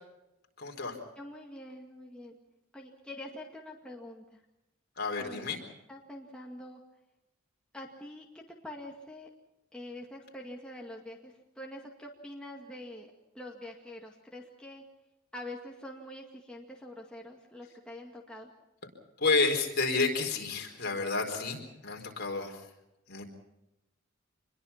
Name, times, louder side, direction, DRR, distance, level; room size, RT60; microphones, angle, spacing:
voice 1, 0.6-1.0 5.0-5.6 19.2-22.6 23.1-23.2, left 3 dB, 50° left, 2 dB, 4.3 m, -30 dB
voice 2, 1.2-2.4 2.7-4.4 5.2-5.4 5.9-6.8 7.7-9.3 9.7-14.8 15.3-18.5, left 1 dB, 5° left, -1 dB, 2.1 m, -45 dB
26.5 x 21.5 x 5.8 m, 0.92 s
head